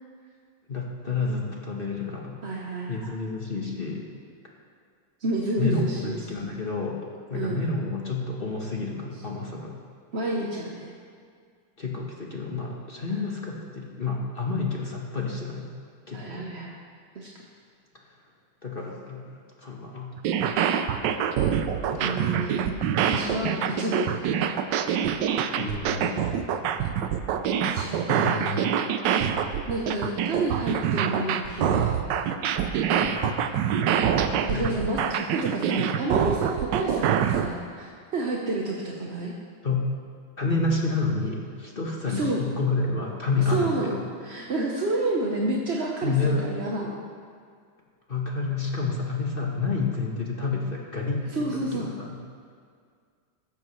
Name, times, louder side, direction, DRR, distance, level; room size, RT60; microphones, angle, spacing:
voice 1, 0.7-2.4 2.9-4.1 5.6-7.0 7.3-9.8 11.8-15.7 16.1-16.5 18.6-20.2 21.9-22.2 25.5-26.4 28.1-28.7 33.0-33.6 34.3-34.7 39.6-39.8 40.4-44.0 46.0-46.5 48.1-52.2, left 3 dB, 35° left, -1 dB, 1.0 m, -29 dB
voice 2, 2.4-3.1 5.2-6.3 7.3-7.6 10.1-10.9 16.1-16.7 17.1-17.3 22.0-22.8 23.1-24.1 27.6-28.7 29.7-32.1 34.5-39.3 42.1-42.4 43.5-47.0 51.3-51.9, right 2 dB, 45° right, -2 dB, 0.9 m, -29 dB
sound 1, 20.2-37.5, right 8 dB, 70° right, 1.2 m, -25 dB
15.5 x 13.5 x 3.2 m, 2.1 s
omnidirectional pair, 2.2 m